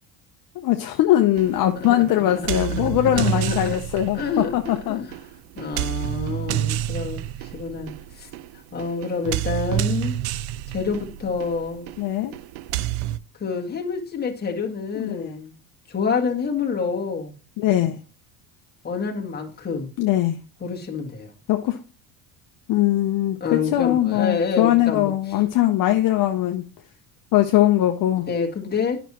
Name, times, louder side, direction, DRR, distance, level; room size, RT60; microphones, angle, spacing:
voice 1, 0.5-5.0 12.0-12.3 15.0-15.2 17.6-18.0 20.0-20.4 21.5-21.8 22.7-26.6 27.3-28.3, left 13 dB, 50° left, 0.7 m, -21 dB
sound 1, 1.4-13.2, right 13 dB, 85° right, 0.5 m, -29 dB
voice 2, 1.7-3.8 4.1-4.5 4.9-5.1 5.5-8.3 8.7-11.9 13.4-15.5 15.9-17.4 18.8-19.9 20.6-21.3 23.4-25.1 28.3-29.0, left 5 dB, 25° left, 1.6 m, -28 dB
9.2 x 6.0 x 2.9 m
cardioid pair, 125°, 41 cm